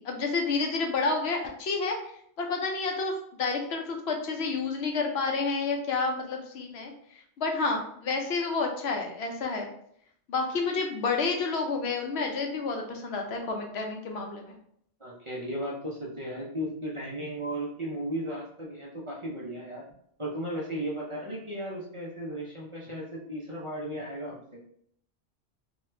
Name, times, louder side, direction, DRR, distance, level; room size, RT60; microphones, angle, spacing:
voice 1, 0.0-6.9 7.4-9.7 10.3-14.6, left 4 dB, 70° left, 2 dB, 0.9 m, -30 dB
voice 2, 15.0-19.8 20.2-24.6, right 1 dB, 35° right, -5 dB, 0.6 m, -35 dB
2.9 x 2.3 x 3.2 m, 0.67 s
omnidirectional pair, 1.1 m